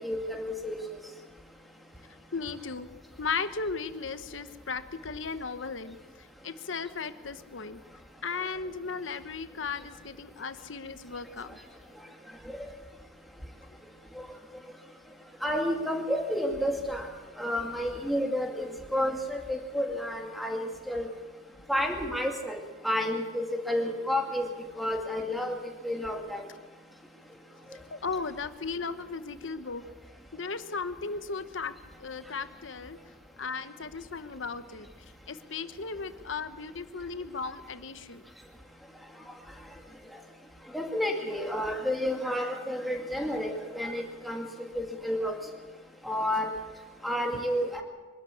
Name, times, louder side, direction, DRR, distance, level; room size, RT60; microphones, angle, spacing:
voice 1, 0.0-0.8 15.4-17.1 17.4-21.1 21.7-22.6 22.8-24.5 24.8-25.6 25.8-26.4 40.7-44.5 44.7-45.3 46.0-46.5 47.0-47.8, equal, ahead, 1 dB, 2.3 m, -30 dB
voice 2, 2.0-2.9 3.2-7.8 8.2-11.6 27.9-29.8 30.3-33.0 33.4-38.2 47.3-47.4, left 4 dB, 90° left, 11 dB, 1.1 m, -36 dB
24.0 x 13.0 x 8.5 m, 1.4 s
head